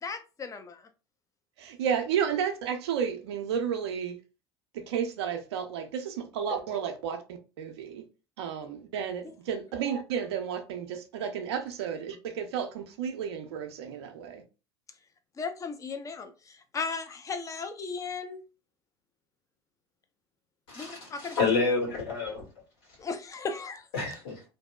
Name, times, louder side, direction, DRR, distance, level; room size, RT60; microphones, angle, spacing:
voice 1, 0.0-0.8 9.2-9.3 15.4-18.4 20.8-21.4 23.0-23.9, left 5 dB, 25° left, 0.5 m, -36 dB
voice 2, 1.6-4.2 4.7-7.2 7.6-8.0 8.4-14.4, right 7 dB, 80° right, 0.5 m, -32 dB
voice 3, 20.7-22.5 23.9-24.4, left 4 dB, 70° left, 1.4 m, -29 dB
2.6 x 2.1 x 2.2 m
hypercardioid pair, 80°, 14 cm